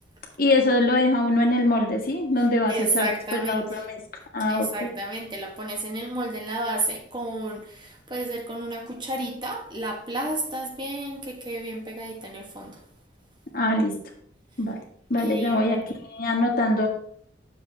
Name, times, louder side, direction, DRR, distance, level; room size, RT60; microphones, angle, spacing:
voice 1, 0.4-4.0 4.3-4.9 13.5-13.9 14.6-14.8 15.1-15.8 16.1-16.9, left 1 dB, 50° left, 1.7 m, -23 dB
voice 2, 2.7-3.8 4.5-12.8 15.2-15.7, right 2 dB, 25° right, 1.3 m, -31 dB
10.0 x 7.0 x 3.4 m
head